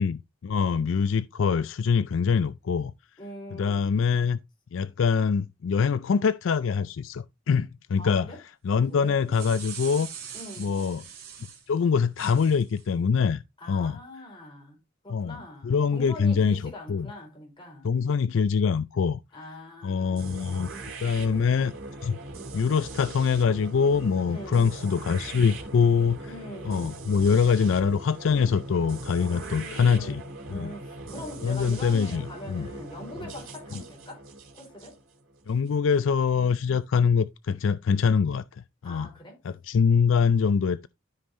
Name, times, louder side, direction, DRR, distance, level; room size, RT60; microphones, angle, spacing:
voice 1, 0.0-2.9 3.5-4.4 4.7-8.3 8.6-10.1 10.6-11.0 11.7-13.4 13.7-14.0 15.1-15.4 15.6-16.6 16.9-17.1 17.8-19.2 19.8-20.7 21.0-21.7 22.0-22.2 22.5-26.3 26.7-30.2 30.5-30.7 31.4-32.2 32.5-32.7 35.5-38.4 38.8-39.1 39.4-40.9, left 6 dB, 65° left, 0.4 m, -24 dB
voice 2, 3.2-4.0 8.0-8.4 8.7-9.4 10.3-10.9 13.6-17.9 19.3-20.4 24.3-25.0 26.3-27.0 29.3-34.3 34.5-35.0 38.8-39.4, left 1 dB, 25° left, 4.3 m, -43 dB
sound 1, 9.1-11.6 12.2-12.8, right 8 dB, 50° right, 2.6 m, -42 dB
sound 2, 20.2-36.0, right 2 dB, 75° right, 3.0 m, -40 dB
13.0 x 5.4 x 2.6 m
head